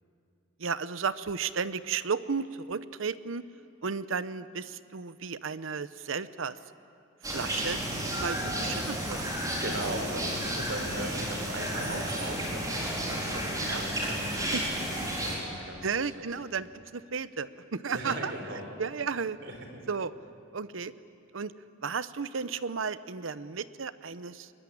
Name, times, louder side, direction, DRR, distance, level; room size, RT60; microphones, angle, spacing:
voice 1, 0.6-3.4 3.8-6.6 7.3-9.2 11.9-12.0 13.6-13.8 14.5-14.6 15.8-16.7 16.9-18.3 18.8-19.4 19.9-20.1 20.5-20.9 21.3-21.5 21.8-24.5, right 5 dB, 75° right, 15 dB, 0.8 m, -33 dB
sound 1, 7.2-15.4, right 1 dB, 20° right, 4.6 m, -32 dB
voice 2, 8.1-8.5 9.2-16.3 17.9-18.6 19.4-19.6, right 1 dB, 60° right, 3 dB, 4.5 m, -39 dB
22.0 x 21.5 x 10.0 m, 2.5 s
head